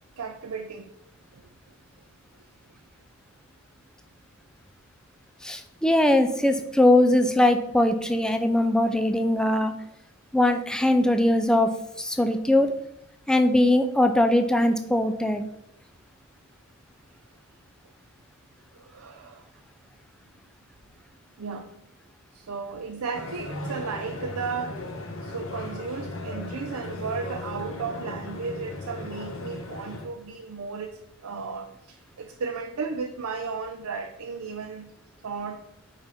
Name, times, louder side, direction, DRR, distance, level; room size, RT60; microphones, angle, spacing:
voice 1, 0.2-0.9 1.3-1.5 18.7-19.5 21.4-21.7 22.3-24.8 25.2-34.9 35.2-35.7, right 5 dB, 80° right, 6 dB, 0.5 m, -34 dB
voice 2, 5.4-9.7 10.3-11.7 12.0-12.7 13.3-15.4, left 1 dB, 5° left, 7 dB, 0.4 m, -21 dB
sound 1, 23.1-30.0, left 2 dB, 60° left, 1.1 m, -36 dB
5.7 x 5.2 x 4.1 m, 0.87 s
head